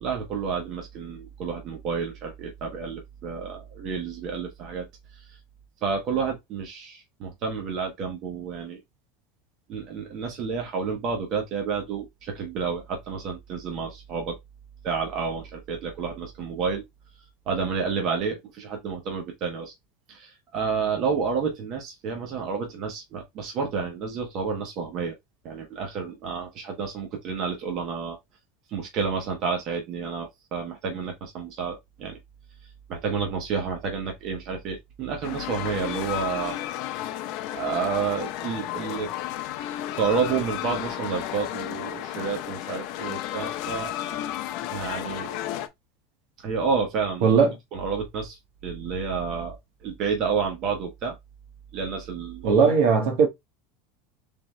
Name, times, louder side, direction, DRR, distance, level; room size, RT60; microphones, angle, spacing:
voice 1, 0.0-4.9 5.1-5.2 5.8-8.8 9.7-14.4 14.8-16.8 17.5-19.7 20.1-25.1 25.4-28.2 28.7-32.2 32.9-36.6 36.9-37.0 37.5-39.1 40.0-43.9 44.7-45.3 46.4-47.3 47.7-49.6 49.8-51.2 51.7-52.6, right 5 dB, 40° right, 1.1 m, -30 dB
sound 1, 35.2-45.7, left 12 dB, 50° left, 0.6 m, -33 dB
voice 2, 47.2-47.5 52.4-53.3, right 5 dB, 60° right, 1.4 m, -18 dB
3.8 x 3.6 x 3.1 m
supercardioid pair, 165°, 0 cm